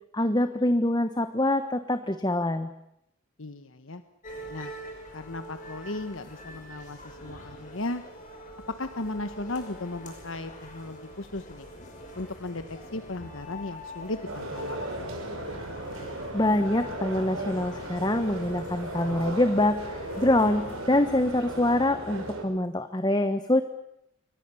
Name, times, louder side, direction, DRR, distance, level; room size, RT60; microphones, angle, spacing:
voice 1, 0.1-2.7 16.3-19.8 20.2-23.6, left 1 dB, 20° left, 10 dB, 1.1 m, -25 dB
voice 2, 3.4-4.0 4.5-4.7 5.1-8.0 8.7-11.7 12.2-15.1, left 2 dB, 65° left, 9 dB, 1.2 m, -36 dB
sound 1, 4.2-21.9, left 1 dB, 35° left, 6.3 m, -44 dB
sound 2, 14.3-22.4, right 1 dB, 75° right, 5.6 m, -36 dB
28.5 x 24.0 x 7.1 m, 0.81 s
head